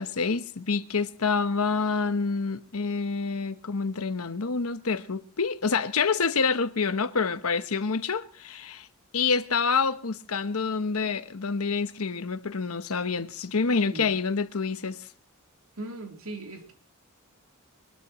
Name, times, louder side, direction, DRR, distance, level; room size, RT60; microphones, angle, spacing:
voice 1, 0.0-8.9 9.1-15.1, left 5 dB, 75° left, 1.0 m, -27 dB
voice 2, 15.8-16.7, right 2 dB, 70° right, 3.3 m, -38 dB
23.0 x 20.5 x 3.1 m
head